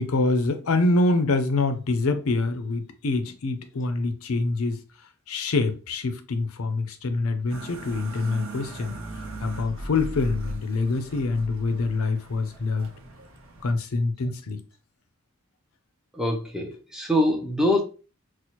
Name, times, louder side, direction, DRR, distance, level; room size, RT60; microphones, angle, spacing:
voice 1, 0.0-4.8 5.3-8.9 9.4-12.9 13.6-14.6, left 3 dB, 70° left, 0.5 m, -25 dB
sound 1, 7.5-13.7, right 2 dB, 65° right, 0.6 m, -39 dB
voice 2, 16.1-17.8, left 1 dB, 5° right, 0.5 m, -24 dB
4.2 x 2.1 x 2.9 m
head